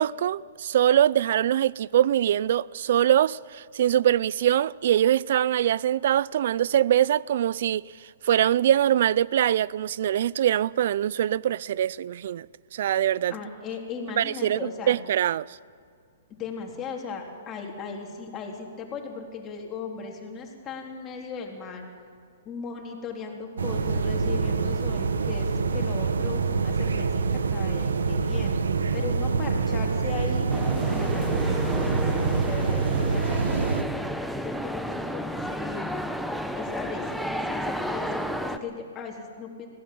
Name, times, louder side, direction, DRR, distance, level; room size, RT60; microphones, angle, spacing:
voice 1, 0.0-7.8 8.2-12.5 12.7-13.3 14.2-15.5, right 11 dB, 60° right, 0.4 m, -23 dB
voice 2, 13.3-15.0 16.3-21.9 22.5-28.6 28.9-30.5 30.9-34.0 34.4-36.0 36.5-39.7, left 5 dB, 25° left, 3.6 m, -37 dB
sound 1, 23.6-33.8, right 4 dB, 90° right, 1.3 m, -26 dB
sound 2, 30.5-38.6, equal, ahead, 1.0 m, -31 dB
21.5 x 16.5 x 7.7 m
hypercardioid pair, 140°, 0 cm